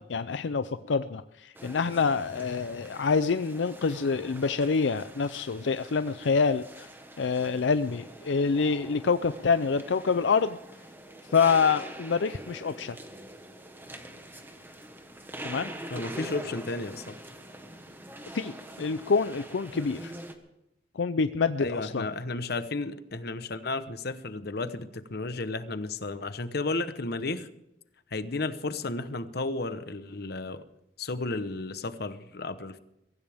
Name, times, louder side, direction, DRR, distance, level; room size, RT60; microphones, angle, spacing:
voice 1, 0.0-6.9 7.2-10.6 11.3-13.0 15.4-15.7 18.3-20.1 21.0-22.0, left 5 dB, 85° left, 12 dB, 0.5 m, -26 dB
sound 1, 1.5-20.3, right 1 dB, 10° right, 1.5 m, -44 dB
voice 2, 15.9-17.2 21.6-27.5 28.1-30.6 31.0-32.8, left 3 dB, 60° left, 11 dB, 1.0 m, -33 dB
23.0 x 15.5 x 3.6 m, 0.86 s
head